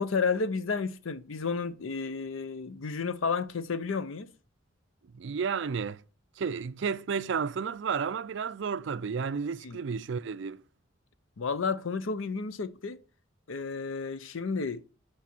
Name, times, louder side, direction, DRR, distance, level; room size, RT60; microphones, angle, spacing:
voice 1, 0.0-4.3 9.6-9.8 11.4-13.0 13.5-14.8, left 5 dB, 85° left, 0.6 m, -31 dB
voice 2, 5.1-6.0 6.4-10.6, right 6 dB, 65° right, 0.4 m, -32 dB
8.4 x 5.0 x 4.4 m
head